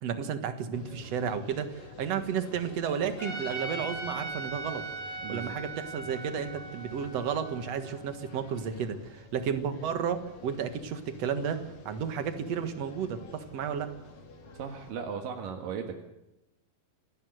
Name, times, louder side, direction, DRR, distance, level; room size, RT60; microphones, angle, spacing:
voice 1, 0.0-13.9, right 7 dB, 55° right, 8 dB, 2.5 m, -33 dB
sound 1, 0.7-14.9, left 2 dB, 80° left, 4.4 m, -50 dB
Trumpet, 3.2-8.4, right 2 dB, 10° left, 4.5 m, -40 dB
voice 2, 5.2-5.6 14.5-16.0, right 6 dB, 85° right, 3 dB, 3.3 m, -37 dB
27.0 x 14.5 x 7.9 m, 0.92 s
omnidirectional pair, 3.8 m